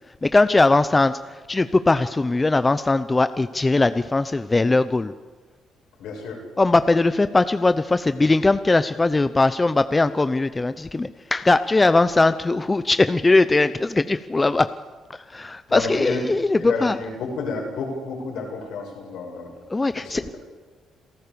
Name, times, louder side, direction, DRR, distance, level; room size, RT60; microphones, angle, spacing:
voice 1, 0.2-1.2 1.5-5.1 6.6-14.7 15.1-17.0 19.7-20.2, left 2 dB, 20° left, 12 dB, 0.7 m, -20 dB
voice 2, 6.0-6.4 15.7-16.2 16.6-19.5 20.0-20.4, left 4 dB, 80° left, 0 dB, 6.5 m, -30 dB
27.5 x 14.0 x 6.9 m, 1.3 s
cardioid pair, 85°, 0 cm